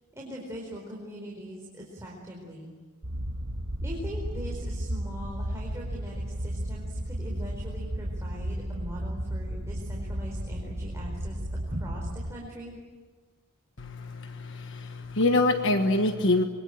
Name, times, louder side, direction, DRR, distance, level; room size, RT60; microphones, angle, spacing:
voice 1, 0.1-2.7 3.8-12.7, equal, 10° right, -2 dB, 4.5 m, -41 dB
sound 1, 3.0-12.3, right 1 dB, 65° right, 1.8 m, -33 dB
voice 2, 13.8-16.4, left 2 dB, 55° left, 7 dB, 1.4 m, -25 dB
26.0 x 24.0 x 9.0 m, 1.4 s
head